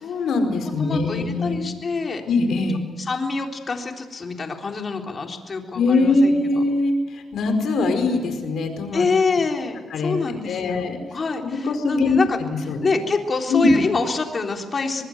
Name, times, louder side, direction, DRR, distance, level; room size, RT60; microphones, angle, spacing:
voice 1, 0.0-1.6 2.2-2.8 5.7-9.1 9.9-11.0 11.6-12.2 12.7-12.9 13.5-13.7, left 3 dB, 80° left, 6 dB, 4.8 m, -22 dB
voice 2, 0.8-2.2 3.1-6.6 8.9-12.4 12.7-15.0, left 4 dB, 40° left, 3 dB, 3.7 m, -26 dB
25.0 x 20.5 x 9.4 m, 1.5 s
cardioid pair, 95°, 0 cm